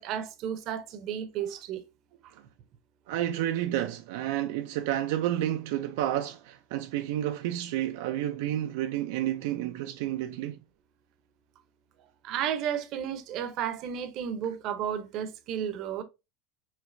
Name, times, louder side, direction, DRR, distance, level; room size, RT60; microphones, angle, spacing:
voice 1, 0.0-1.8 12.2-16.0, right 9 dB, 45° right, 0.7 m, -33 dB
voice 2, 3.1-10.6, right 12 dB, 70° right, 0.4 m, -30 dB
5.0 x 3.0 x 2.6 m
supercardioid pair, 150°, 0 cm